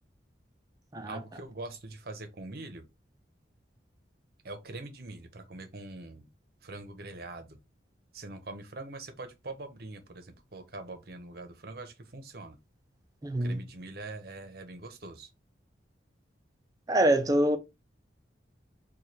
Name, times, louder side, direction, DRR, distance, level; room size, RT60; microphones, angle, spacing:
voice 1, 1.0-2.9 4.4-6.3 6.6-7.6 8.1-12.6 13.4-15.3, right 2 dB, 55° right, 0.7 m, -43 dB
voice 2, 13.2-13.6 16.9-17.6, right 1 dB, 20° right, 0.4 m, -25 dB
3.1 x 2.3 x 4.1 m
head